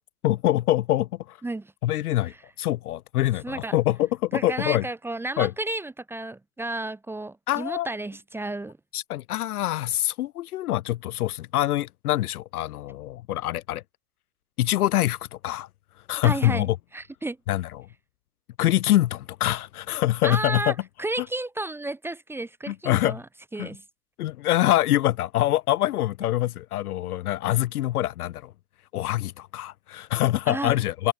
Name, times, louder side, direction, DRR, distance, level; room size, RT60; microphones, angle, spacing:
voice 1, 0.2-1.4 1.8-4.9 5.4-5.5 7.5-7.9 8.9-13.8 14.6-15.7 16.1-16.8 17.5-17.9 18.6-20.7 21.2-21.3 22.7-23.2 23.6-23.7 24.2-28.5 28.9-31.1, left 14 dB, 60° left, 1.0 m, -25 dB
voice 2, 3.4-3.7 4.3-8.8 16.2-17.4 20.2-23.2 23.5-23.8 30.5-30.7, right 2 dB, 5° right, 1.4 m, -32 dB
hypercardioid pair, 140°, 49 cm